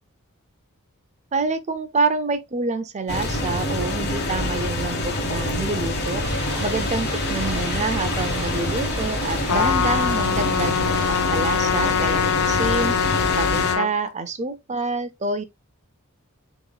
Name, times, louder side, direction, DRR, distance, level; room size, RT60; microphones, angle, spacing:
voice 1, 1.3-6.2 6.6-15.4, right 3 dB, 30° right, 0.6 m, -27 dB
sound 1, 3.1-13.7, left 1 dB, 50° left, 1.3 m, -26 dB
sound 2, 6.2-11.2, right 1 dB, 10° right, 1.8 m, -36 dB
Trumpet, 9.5-13.9, left 7 dB, 75° left, 0.4 m, -23 dB
7.5 x 3.1 x 2.3 m
head